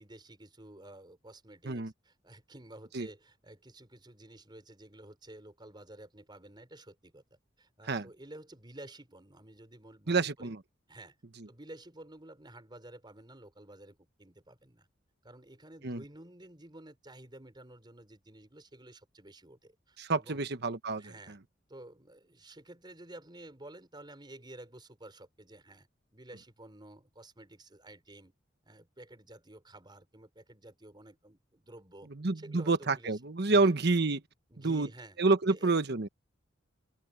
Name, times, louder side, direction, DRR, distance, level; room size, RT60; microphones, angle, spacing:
voice 1, 0.0-10.5 10.9-11.2 11.5-14.9 15.2-20.4 21.0-21.4 21.7-25.9 26.1-28.3 28.6-32.1 32.3-33.2 33.5-33.7 34.5-35.2 35.5-35.7, right 1 dB, 25° right, 4.4 m, -52 dB
voice 2, 10.1-10.6 15.8-16.0 20.0-21.4 32.1-34.2 34.6-34.9 35.2-36.1, right 3 dB, 60° right, 1.2 m, -28 dB
open air
head